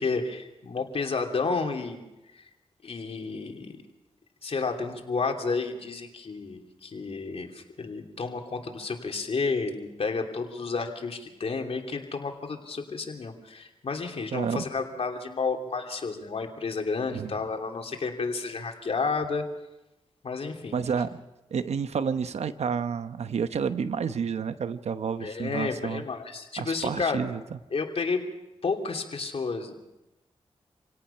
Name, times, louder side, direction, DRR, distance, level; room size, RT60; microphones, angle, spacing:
voice 1, 0.0-2.0 2.3-2.4 2.8-3.8 4.4-19.4 20.2-20.8 25.2-27.2 27.7-28.2 28.6-29.9, left 4 dB, 65° left, 3 dB, 3.0 m, -31 dB
voice 2, 14.3-14.7 17.1-17.3 20.7-21.2 21.5-26.0 26.6-27.4, right 6 dB, 90° right, 11 dB, 0.9 m, -30 dB
27.5 x 17.5 x 5.7 m, 0.98 s
cardioid pair, 65°, 11 cm